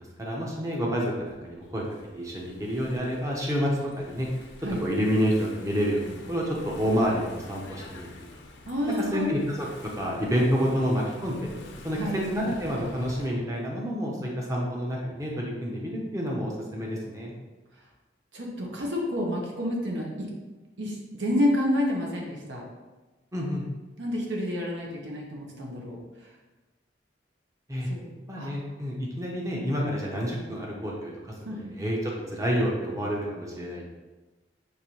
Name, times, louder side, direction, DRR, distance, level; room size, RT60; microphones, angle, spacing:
voice 1, 0.0-4.3 4.8-8.1 9.1-9.7 9.9-11.5 11.8-17.3 23.3-23.7 27.7-27.9 28.3-31.3 31.8-33.9, equal, 20° right, -2 dB, 0.6 m, -29 dB
Engine / Mechanisms, 1.1-13.3, left 2 dB, 70° left, 0.6 m, -46 dB
voice 2, 8.7-9.3 12.0-12.2 18.3-20.3 20.8-22.6 24.0-26.0 27.9-28.1 28.4-28.5 31.4-31.7, left 1 dB, 80° right, -1 dB, 0.9 m, -29 dB
6.5 x 2.6 x 2.9 m, 1.2 s
head